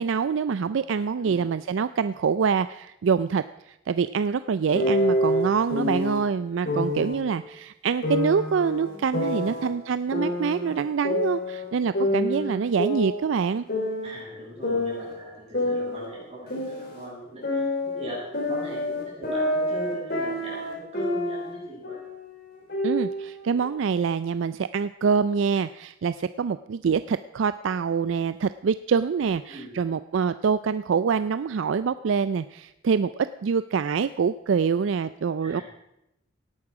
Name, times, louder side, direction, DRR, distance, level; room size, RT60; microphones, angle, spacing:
voice 1, 0.0-13.7 22.8-35.6, right 6 dB, 70° right, 13 dB, 0.4 m, -25 dB
sound 1, 4.7-6.2 6.7-7.2 8.0-9.7 10.1-11.7 11.9-14.2 14.6-17.1 17.4-21.5 21.8-22.2 22.7-23.7, left 1 dB, 50° left, 4.0 m, -27 dB
voice 2, 14.0-17.7 17.9-18.2 18.5-22.0 29.5-29.7 35.4-35.6, equal, 30° right, -5 dB, 6.8 m, -39 dB
18.0 x 11.0 x 4.8 m, 0.86 s
head